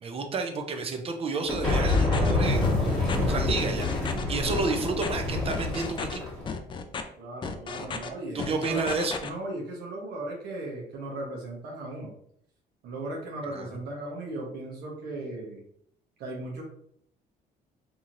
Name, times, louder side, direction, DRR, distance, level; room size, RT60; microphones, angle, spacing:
voice 1, 0.0-3.9 4.3-6.2 8.3-9.2 13.5-13.7, right 4 dB, 35° right, 5 dB, 0.5 m, -30 dB
sound 1, 1.5-6.5, left 2 dB, 5° left, 1.4 m, -27 dB
sound 2, 1.6-2.3 2.6-3.2 3.6-4.2 4.5-5.1 5.5-6.2 6.5-7.0 7.4-8.1 8.4-9.3, left 5 dB, 30° left, 0.4 m, -34 dB
voice 2, 4.3-4.7 7.2-12.1 12.8-15.6 16.2-16.6, right 2 dB, 70° right, -2 dB, 0.9 m, -37 dB
2.9 x 2.7 x 2.5 m, 0.67 s
cardioid pair, 110°, 17 cm